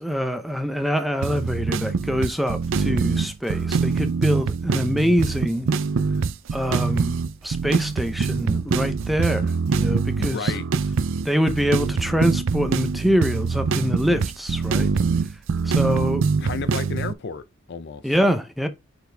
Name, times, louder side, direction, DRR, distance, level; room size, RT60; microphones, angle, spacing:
voice 1, 0.0-5.7 6.5-7.2 7.4-10.5 11.2-14.9 15.6-16.2 18.0-18.7, equal, ahead, 0.6 m, -24 dB
sound 1, 1.2-17.1, right 5 dB, 60° right, 0.4 m, -24 dB
voice 2, 10.1-10.9 16.4-18.0, left 5 dB, 50° left, 0.5 m, -33 dB
6.8 x 4.2 x 3.3 m
head